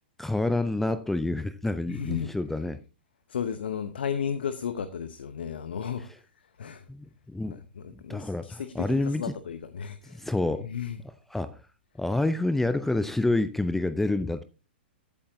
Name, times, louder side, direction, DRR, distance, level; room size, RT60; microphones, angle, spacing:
voice 1, 0.2-2.8 6.9-7.6 8.1-9.2 10.1-10.7 11.3-11.6 12.0-14.4, left 2 dB, 5° left, 0.4 m, -28 dB
voice 2, 1.9-2.3 3.3-6.1 6.4-6.9 7.5-10.3 10.6-11.0, left 7 dB, 65° left, 0.8 m, -34 dB
14.5 x 8.5 x 2.7 m
figure-of-eight pair, 110°, 6 cm